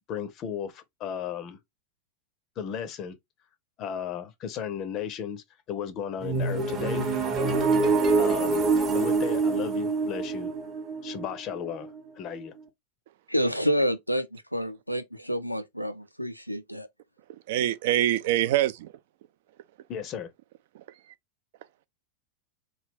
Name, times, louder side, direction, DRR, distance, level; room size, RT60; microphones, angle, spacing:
voice 1, 0.1-1.6 2.6-3.2 3.8-7.1 8.2-8.6 8.9-10.5 11.0-12.5 19.9-20.3, left 8 dB, 35° left, 0.5 m, -35 dB
sound 1, 6.2-12.0, right 4 dB, 30° right, 0.8 m, -25 dB
voice 2, 13.3-16.9, equal, 90° left, 0.4 m, -28 dB
voice 3, 17.3-18.9 20.7-20.8, right 13 dB, 55° right, 0.3 m, -25 dB
3.2 x 2.3 x 3.3 m
figure-of-eight pair, 90°, 0 cm